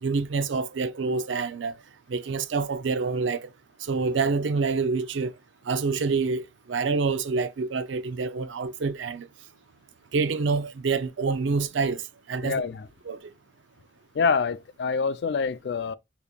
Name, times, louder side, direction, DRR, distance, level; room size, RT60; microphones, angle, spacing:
voice 1, 0.0-1.7 2.1-3.5 3.8-5.3 5.7-9.3 10.1-12.6 13.1-13.3, right 4 dB, 75° right, 0.5 m, -27 dB
voice 2, 12.4-12.9 14.1-15.9, left 5 dB, 60° left, 0.4 m, -26 dB
5.0 x 2.9 x 2.3 m
head